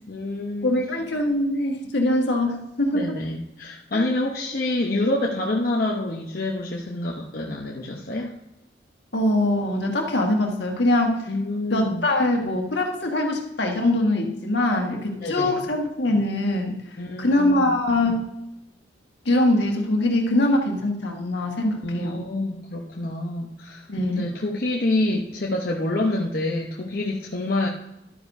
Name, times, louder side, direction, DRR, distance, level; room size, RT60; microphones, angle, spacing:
voice 1, 0.1-0.8 2.9-8.3 11.3-12.1 15.1-15.6 17.0-17.7 21.8-27.7, left 2 dB, 50° left, -2 dB, 0.8 m, -27 dB
voice 2, 0.6-3.2 3.9-4.0 9.1-11.3 11.7-16.8 17.2-18.3 19.3-22.2 23.9-24.2, left 1 dB, 70° left, 1 dB, 1.6 m, -23 dB
11.5 x 9.5 x 2.7 m, 0.88 s
head